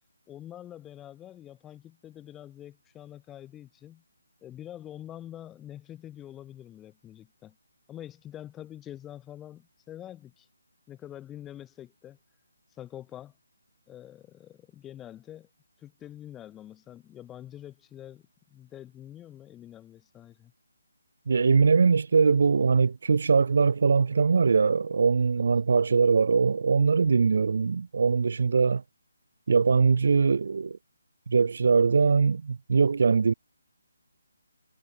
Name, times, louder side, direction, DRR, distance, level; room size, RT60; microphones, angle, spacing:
voice 1, 0.3-4.0 4.4-7.6 7.9-10.5 10.9-12.2 12.8-13.3 13.9-15.5 15.8-18.2 18.5-20.5 25.3-25.4, left 12 dB, 10° left, 3.3 m, -45 dB
voice 2, 21.3-28.8 29.5-30.8 31.3-33.3, right 5 dB, 55° right, 0.7 m, -22 dB
hypercardioid pair, 170°, 0 cm